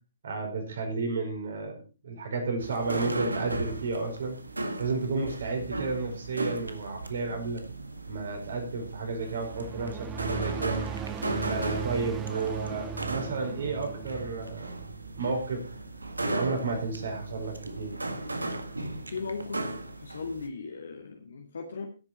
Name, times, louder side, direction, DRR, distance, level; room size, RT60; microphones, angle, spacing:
voice 1, 0.2-1.8 2.0-4.3 4.8-7.6 8.1-10.8 11.4-14.8 15.1-15.6 16.2-17.9, right 3 dB, 60° right, 2 dB, 5.1 m, -32 dB
sound 1, 2.6-20.5, right 2 dB, 85° right, 1.8 m, -36 dB
sound 2, 9.2-15.8, right 9 dB, 15° right, 0.6 m, -38 dB
voice 2, 19.1-21.9, left 4 dB, 65° left, 3 dB, 1.8 m, -38 dB
16.5 x 8.7 x 4.4 m, 0.34 s
figure-of-eight pair, 125°, 0 cm